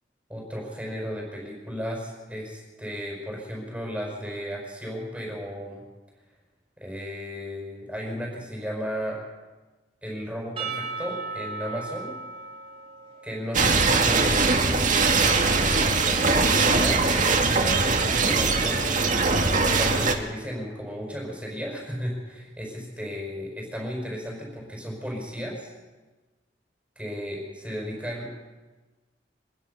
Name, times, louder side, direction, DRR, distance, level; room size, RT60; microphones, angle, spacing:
voice 1, 0.3-5.8 6.8-9.2 10.0-12.1 13.2-15.2 15.5-18.9 19.6-25.7 27.0-28.4, equal, 5° right, -2 dB, 5.7 m, -34 dB
Percussion / Church bell, 10.6-14.9, right 4 dB, 30° right, 3.5 m, -37 dB
sound 1, 13.5-20.1, right 4 dB, 50° right, 2.1 m, -21 dB
24.5 x 20.5 x 5.6 m, 1.2 s
head